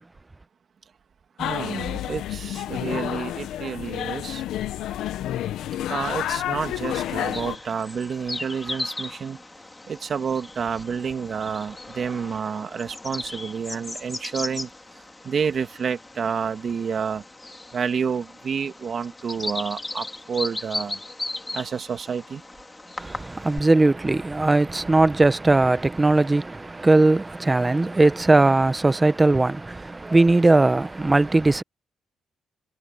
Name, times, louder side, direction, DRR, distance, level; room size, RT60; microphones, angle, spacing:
sound 1, 1.4-7.6, left 12 dB, 80° left, 1.1 m, -30 dB
voice 1, 1.4-4.4 5.9-9.4 9.9-14.7 14.9-17.2 17.7-21.0 21.5-22.4, right 6 dB, 50° right, 2.2 m, -29 dB
Bird vocalization bird call bird song, 6.6-23.6, left 2 dB, 15° left, 2.7 m, -37 dB
voice 2, 23.0-31.6, right 2 dB, 20° right, 1.0 m, -19 dB
cardioid pair, 90°, 0 cm